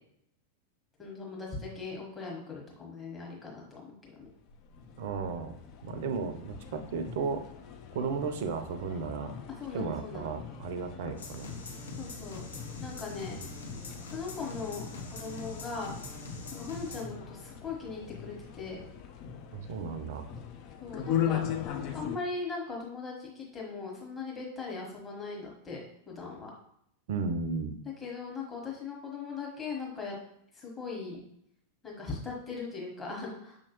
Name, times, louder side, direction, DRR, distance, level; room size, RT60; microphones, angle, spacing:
voice 1, 1.0-4.3 9.6-10.3 12.0-12.4 12.8-13.3 14.1-14.8 15.1-15.9 16.5-18.8 20.8-21.4 21.9-25.8 26.1-26.5 28.0-30.1 30.5-31.2 31.8-33.6, left 4 dB, 15° left, -2 dB, 1.5 m, -39 dB
sound 1, 4.2-22.2, left 9 dB, 40° left, 0.5 m, -40 dB
voice 2, 5.0-7.4 7.9-9.3 9.7-11.5 13.3-13.5 19.5-20.3 27.1-27.8, right 5 dB, 55° right, 8 dB, 0.5 m, -34 dB
sound 2, 11.2-17.0, left 2 dB, 70° left, 0.8 m, -43 dB
6.1 x 2.8 x 3.0 m, 0.72 s
figure-of-eight pair, 90°, 0 cm